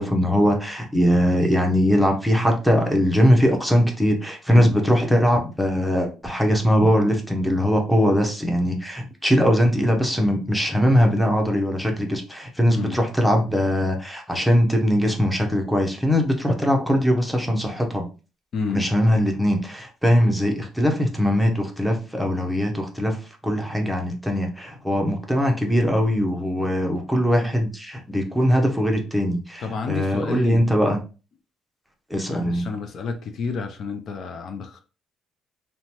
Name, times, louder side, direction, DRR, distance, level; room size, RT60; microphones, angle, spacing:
voice 1, 0.0-18.1 18.7-23.2 23.4-31.0 32.1-32.7, equal, ahead, 0.7 m, -21 dB
voice 2, 12.7-13.0 18.5-18.9 29.6-30.7 32.3-34.8, left 5 dB, 55° left, 0.4 m, -29 dB
2.9 x 2.2 x 2.8 m
cardioid pair, 105°, 0 cm